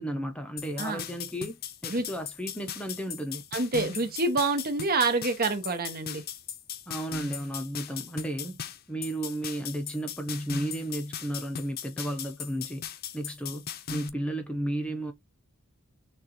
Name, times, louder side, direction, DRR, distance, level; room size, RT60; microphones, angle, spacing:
voice 1, 0.0-1.6 1.8-3.4 6.9-8.6 8.9-12.8 13.1-13.6 13.9-15.1, right 1 dB, 5° left, 0.7 m, -33 dB
sound 1, 0.6-14.1, left 8 dB, 50° left, 0.6 m, -38 dB
voice 2, 3.5-6.2, right 3 dB, 45° right, 1.1 m, -27 dB
6.4 x 2.4 x 3.0 m
head